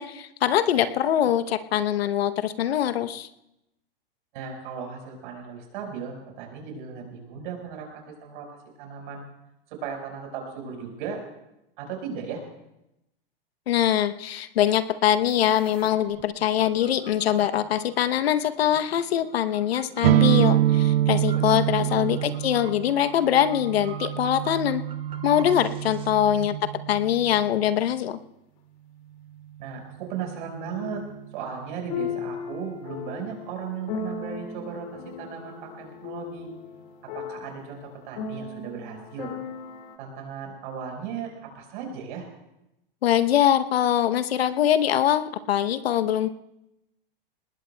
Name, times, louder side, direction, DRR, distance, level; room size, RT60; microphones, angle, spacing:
voice 1, 0.0-3.3 13.7-24.8 25.2-26.6 26.9-28.2 43.0-46.3, left 11 dB, 90° left, 10 dB, 0.9 m, -23 dB
voice 2, 4.3-8.5 8.8-9.2 9.7-11.2 11.8-12.4 21.4-22.2 26.3-26.8 29.6-31.0 31.3-36.5 37.1-39.3 40.0-42.2, right 6 dB, 55° right, 2 dB, 4.8 m, -36 dB
sound 1, 15.3-26.1, right 8 dB, 20° right, 0.5 m, -46 dB
sound 2, 20.0-27.6, right 12 dB, 80° right, 0.5 m, -25 dB
sound 3, 29.6-29.7 30.8-31.1 31.9-40.0, left 5 dB, 50° left, 2.2 m, -36 dB
24.0 x 19.5 x 2.2 m, 0.89 s
supercardioid pair, 145°, 30 cm